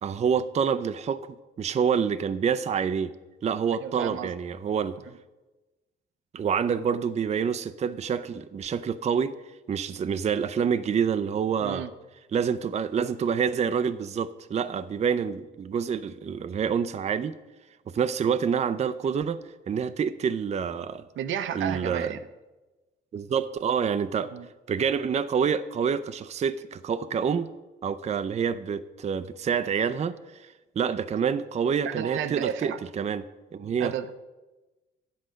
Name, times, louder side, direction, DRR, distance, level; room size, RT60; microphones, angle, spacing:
voice 1, 0.0-3.1 3.4-5.0 6.3-9.3 9.7-11.9 12.3-17.3 17.9-19.4 19.7-21.0 21.5-22.1 23.1-24.3 24.7-27.5 27.8-30.4 30.8-33.2 33.5-33.9, right 7 dB, 35° right, 12 dB, 0.4 m, -27 dB
voice 2, 3.8-4.3 11.6-11.9 21.2-22.2 24.3-24.5 31.8-32.8 33.8-34.2, right 9 dB, 80° right, 10 dB, 0.7 m, -32 dB
9.3 x 7.8 x 5.1 m, 1.1 s
cardioid pair, 90°, 20 cm